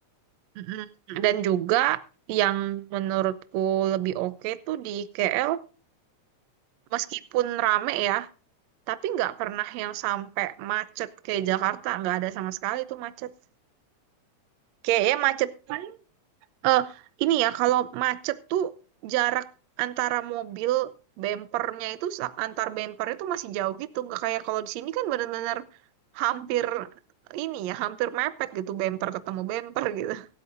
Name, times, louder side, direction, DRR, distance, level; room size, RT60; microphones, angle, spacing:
voice 1, 0.6-2.0 2.3-5.6 6.9-8.3 8.9-13.3 14.8-16.0 16.6-18.7 19.0-19.5 19.8-20.9 21.2-25.6 26.1-26.9 27.3-30.3, right 14 dB, 75° right, 1.7 m, -27 dB
24.5 x 8.2 x 2.6 m
omnidirectional pair, 3.6 m